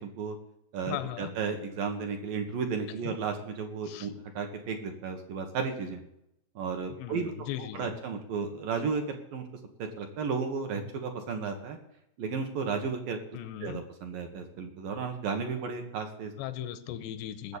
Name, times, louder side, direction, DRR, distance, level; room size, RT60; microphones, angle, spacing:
voice 1, 0.0-0.4 0.7-6.0 6.6-7.3 7.6-9.4 9.8-11.8 12.2-13.2 13.6-16.3 17.5-17.6, right 5 dB, 65° right, 4 dB, 2.6 m, -33 dB
voice 2, 0.9-1.3 3.8-4.1 7.0-8.0 13.3-13.8 16.4-17.6, left 12 dB, 80° left, 12 dB, 2.7 m, -38 dB
18.0 x 7.2 x 8.3 m, 0.79 s
omnidirectional pair, 5.1 m